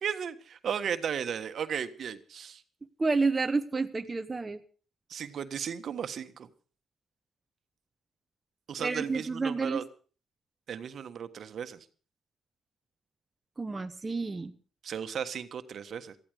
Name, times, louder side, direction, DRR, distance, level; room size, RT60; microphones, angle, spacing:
voice 1, 0.0-2.6 5.1-6.5 8.7-9.8 10.7-11.8 14.8-16.2, right 8 dB, 60° right, 10 dB, 1.4 m, -35 dB
voice 2, 3.0-4.6 8.8-9.8 13.6-14.5, right 3 dB, 25° right, 7 dB, 1.0 m, -30 dB
18.5 x 14.0 x 5.0 m, 0.39 s
cardioid pair, 90°, 0 cm